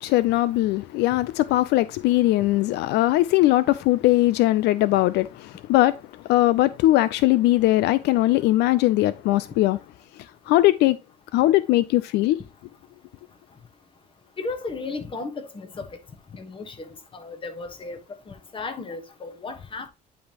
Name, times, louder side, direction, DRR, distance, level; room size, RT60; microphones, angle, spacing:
voice 1, 0.0-9.8 10.5-11.0 11.3-12.4, left 16 dB, 80° left, 0.4 m, -20 dB
voice 2, 14.4-15.9 16.3-16.9 17.1-18.0 18.3-19.9, left 3 dB, 30° left, 1.3 m, -34 dB
10.0 x 3.4 x 2.9 m
cardioid pair, 110°, 17 cm